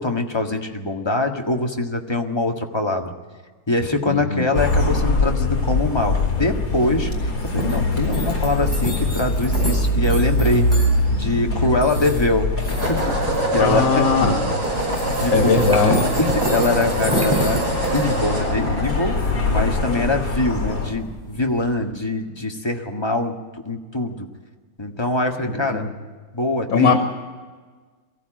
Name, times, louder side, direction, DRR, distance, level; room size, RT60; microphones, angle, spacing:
voice 1, 0.0-3.1 3.7-10.7 11.1-13.2 13.5-14.3 15.2-15.5 16.0-17.6 17.9-23.4 23.6-24.3 24.8-25.8 26.3-27.0, left 2 dB, 15° left, 3 dB, 1.6 m, -23 dB
voice 2, 4.1-4.5 13.6-14.3 15.3-16.1 25.5-25.9 26.7-27.0, left 4 dB, 85° left, 6 dB, 2.5 m, -19 dB
sound 1, 4.5-20.9, left 2 dB, 55° left, 4.7 m, -23 dB
sound 2, 5.3-21.7, equal, 10° right, 4.8 m, -31 dB
sound 3, 8.8-8.9 12.7-19.8, right 1 dB, 55° right, 6.6 m, -25 dB
22.5 x 15.0 x 9.1 m, 1.4 s
omnidirectional pair, 2.1 m